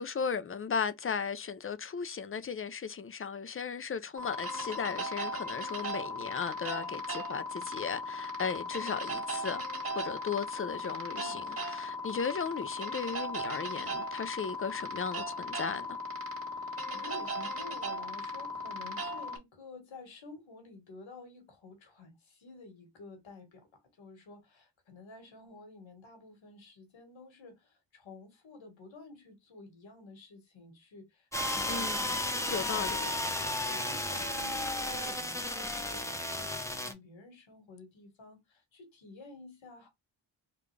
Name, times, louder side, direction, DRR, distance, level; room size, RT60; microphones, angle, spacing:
voice 1, 0.0-9.6 10.0-16.0 31.7-32.0 32.5-33.1, left 6 dB, 30° left, 0.5 m, -36 dB
sound 1, 4.2-19.4, left 1 dB, 30° right, 1.6 m, -37 dB
voice 2, 11.1-11.4 16.5-23.7 24.0-33.2 33.6-39.9, left 3 dB, 75° left, 1.7 m, -51 dB
sound 2, 31.3-36.9, left 1 dB, 5° left, 0.8 m, -33 dB
3.8 x 2.4 x 3.2 m
cardioid pair, 75°, 46 cm